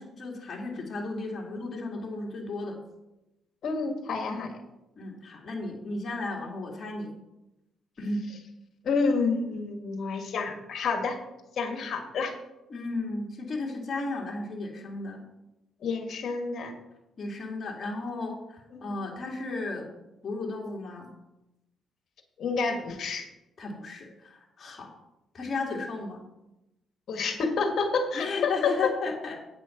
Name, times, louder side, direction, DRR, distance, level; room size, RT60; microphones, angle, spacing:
voice 1, 0.0-2.8 4.2-4.3 5.0-7.1 8.0-8.2 12.7-15.2 17.2-19.9 20.2-21.1 23.6-24.9 25.3-26.2 28.1-29.6, left 3 dB, 40° left, -1 dB, 2.3 m, -34 dB
voice 2, 3.6-4.6 8.8-11.2 11.5-12.3 15.8-16.7 18.7-18.9 22.4-23.3 27.1-28.9, left 4 dB, 60° left, 5 dB, 1.6 m, -29 dB
8.9 x 6.1 x 5.8 m, 0.94 s
cardioid pair, 100°, 0 cm